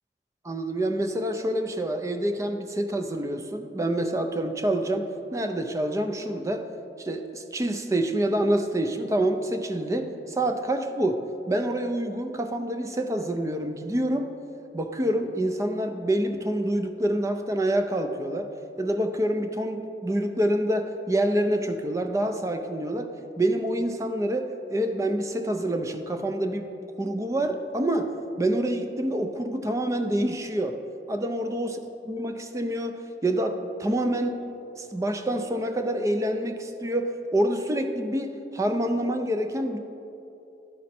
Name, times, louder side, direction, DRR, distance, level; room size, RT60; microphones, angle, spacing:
voice 1, 0.4-6.6 7.0-14.4 14.7-18.5 18.8-23.1 23.4-26.7 27.0-30.8 31.1-31.8 32.1-33.0 33.2-34.5 34.8-39.8, right 1 dB, 15° right, 6 dB, 0.4 m, -27 dB
11.5 x 4.2 x 4.2 m, 2.9 s
head